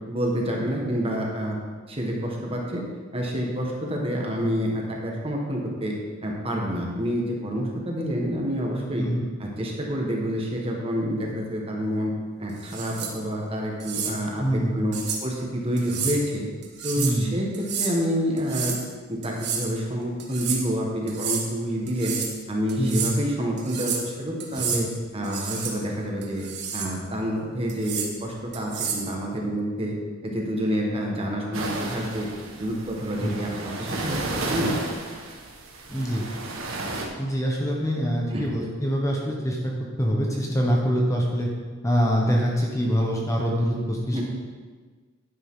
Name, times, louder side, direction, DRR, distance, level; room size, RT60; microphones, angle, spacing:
voice 1, 0.1-1.6 1.9-2.8 3.1-6.0 6.2-9.1 9.4-12.1 12.4-16.5 16.8-18.8 19.1-22.2 22.5-24.9 25.1-26.4 26.7-29.9 30.2-32.3 32.5-35.0 38.3-38.5 44.1-44.2, equal, 30° right, -1 dB, 1.7 m, -28 dB
sound 1, 12.6-13.1 13.8-14.1 14.9-15.2 15.8-16.2 16.6-17.2 17.5-17.9 18.4-18.8 19.2-19.7 20.2-20.6 21.1-21.4 21.9-22.4 22.7-23.1 23.6-24.1 24.4-24.8 25.2-25.7 26.2-26.9 27.7-28.1 28.5-29.1, right 6 dB, 55° right, 1.6 m, -30 dB
voice 2, 14.4-15.0 17.0-17.3 22.8-23.0 24.7-24.9 33.2-33.4 35.9-36.2 37.2-39.7 40.0-41.5 41.8-44.2, equal, 15° left, -2 dB, 1.2 m, -24 dB
sound 2, 31.5-37.1, right 2 dB, 85° right, 1.7 m, -33 dB
10.5 x 10.0 x 3.9 m, 1.5 s
head